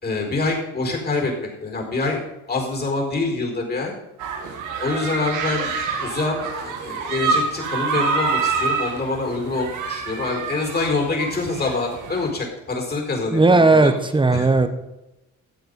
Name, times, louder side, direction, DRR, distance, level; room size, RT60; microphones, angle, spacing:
voice 1, 0.0-3.9 4.8-5.7 6.0-13.9 14.3-14.5, left 3 dB, 35° left, 1 dB, 4.5 m, -25 dB
sound 1, 4.2-12.3, right 4 dB, 85° right, 1.9 m, -27 dB
voice 2, 13.3-14.7, right 3 dB, 15° right, 9 dB, 1.2 m, -16 dB
14.0 x 7.9 x 5.4 m, 0.93 s
cardioid pair, 90°, 30 cm